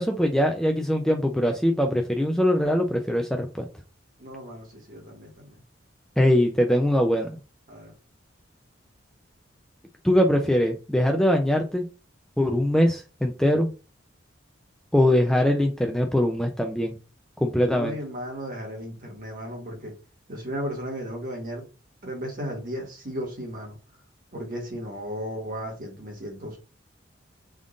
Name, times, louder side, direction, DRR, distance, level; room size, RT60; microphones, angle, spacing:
voice 1, 0.0-3.7 6.2-7.3 10.0-11.9 12.4-13.7 14.9-16.9 17.4-18.0, left 1 dB, 5° left, 0.4 m, -22 dB
voice 2, 4.2-5.6 7.7-7.9 17.7-19.9 20.3-21.6 22.0-23.8 24.3-26.6, equal, 45° right, 1.4 m, -35 dB
3.6 x 2.5 x 3.7 m
head